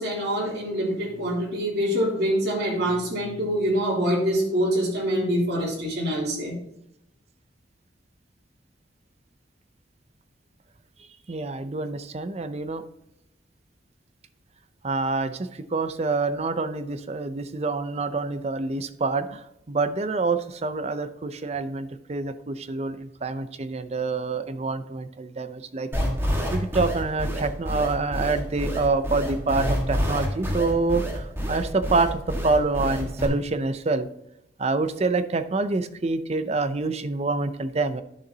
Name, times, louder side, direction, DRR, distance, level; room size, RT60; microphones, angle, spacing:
voice 1, 0.0-6.6, equal, 60° right, -3 dB, 3.1 m, -25 dB
voice 2, 11.3-12.8 14.8-25.9 26.5-34.1 34.6-38.0, right 3 dB, 35° right, 11 dB, 0.5 m, -26 dB
sound 1, 25.9-33.3, equal, 15° right, 1.5 m, -27 dB
10.5 x 6.6 x 2.8 m, 0.82 s
head